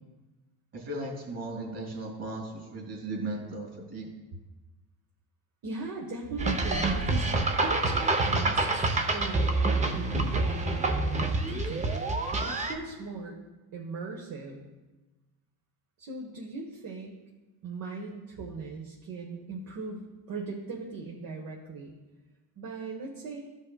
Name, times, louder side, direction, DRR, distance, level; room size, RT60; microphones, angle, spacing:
voice 1, 0.7-4.1, right 2 dB, 40° right, 0 dB, 2.5 m, -36 dB
voice 2, 5.6-7.3 7.6-9.5 9.9-12.1 12.4-13.3 13.7-14.6 16.0-17.2 17.6-21.9 22.6-23.4, right 3 dB, 55° right, -1 dB, 1.2 m, -39 dB
sound 1, 6.4-12.7, right 2 dB, 15° right, 0.6 m, -27 dB
13.5 x 5.3 x 2.3 m, 1.2 s
cardioid pair, 120°, 41 cm